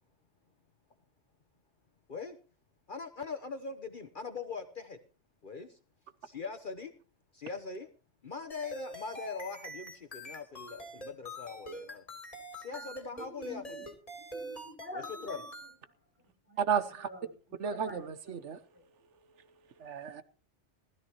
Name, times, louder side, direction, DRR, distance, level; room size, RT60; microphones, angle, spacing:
voice 1, 2.9-5.0 5.4-5.8 6.2-6.9 7.3-7.9 8.2-12.1 12.6-13.6 15.2-15.4, left 4 dB, 50° left, 1.1 m, -41 dB
sound 1, 8.5-15.8, equal, 30° left, 3.2 m, -44 dB
voice 2, 12.6-16.0 16.4-17.3 17.6-18.1 18.4-18.8, left 1 dB, 10° right, 6.3 m, -48 dB
voice 3, 16.6-17.1 17.6-18.6 19.8-20.2, right 7 dB, 85° right, 1.2 m, -33 dB
19.5 x 13.5 x 3.0 m
omnidirectional pair, 1.2 m